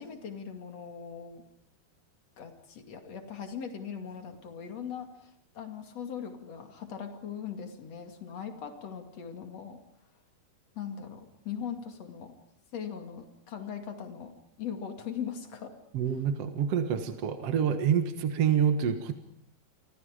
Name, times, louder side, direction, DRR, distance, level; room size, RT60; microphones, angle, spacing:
voice 1, 0.0-1.4 2.4-9.8 10.7-12.3 12.7-14.3 14.6-15.7, left 7 dB, 45° left, 5 dB, 3.1 m, -40 dB
voice 2, 15.9-19.1, right 8 dB, 55° right, 7 dB, 1.7 m, -27 dB
30.0 x 24.5 x 5.2 m, 0.68 s
omnidirectional pair, 4.8 m